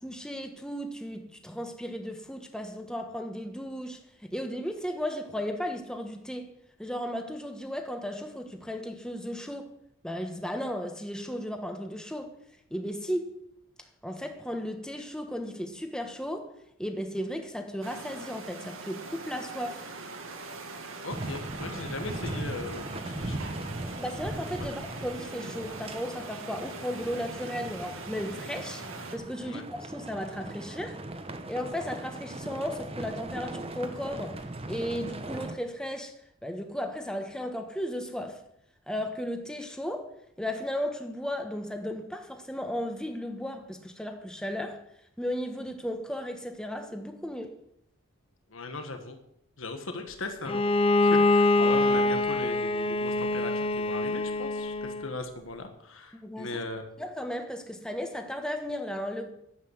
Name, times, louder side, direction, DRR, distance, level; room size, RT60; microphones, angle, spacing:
voice 1, 0.0-6.5 6.8-9.7 10.0-12.3 12.7-13.4 14.0-16.5 16.8-19.8 24.0-28.8 29.1-31.0 31.5-36.1 36.4-38.4 38.9-40.1 40.4-44.8 45.2-47.5 56.1-56.6 57.0-59.3, equal, 5° left, 1.2 m, -35 dB
sound 1, 17.8-29.2, right 3 dB, 75° right, 1.8 m, -42 dB
voice 2, 21.0-23.5 24.6-24.7 29.4-29.6 48.5-49.2 49.6-50.6 51.0-56.8, left 3 dB, 70° left, 1.5 m, -38 dB
sound 2, 21.1-35.5, right 1 dB, 25° right, 1.0 m, -39 dB
Bowed string instrument, 50.5-55.2, left 2 dB, 25° left, 0.6 m, -25 dB
11.5 x 8.2 x 8.0 m
head